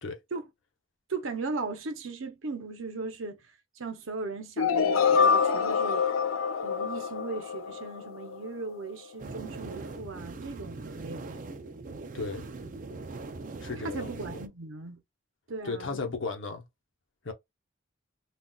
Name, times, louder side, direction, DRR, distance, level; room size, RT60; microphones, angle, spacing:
voice 1, 1.1-3.4 3.8-6.1 6.6-11.5 13.8-15.0 15.5-16.0, right 3 dB, 80° right, 0.7 m, -37 dB
sound 1, 4.6-8.5, left 6 dB, 85° left, 0.4 m, -26 dB
sound 2, 9.2-14.5, right 3 dB, 40° right, 0.4 m, -41 dB
voice 2, 12.1-12.5 13.6-14.4 15.6-16.6 17.2-17.3, left 4 dB, 70° left, 0.9 m, -35 dB
3.8 x 2.4 x 2.3 m
head